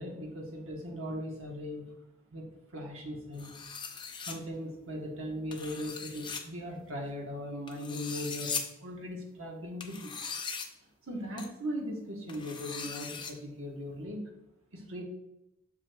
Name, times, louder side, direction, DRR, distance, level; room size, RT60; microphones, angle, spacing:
voice 1, 0.0-1.9 2.3-2.4 2.7-3.5 4.3-10.1 11.1-14.2 14.7-15.0, equal, 65° right, -1 dB, 1.2 m, -39 dB
sound 1, 3.4-4.3 5.5-6.4 7.7-8.6 9.8-10.7 11.4-11.5 12.3-13.3, left 6 dB, 20° left, 0.6 m, -39 dB
7.2 x 6.4 x 2.3 m, 0.85 s
head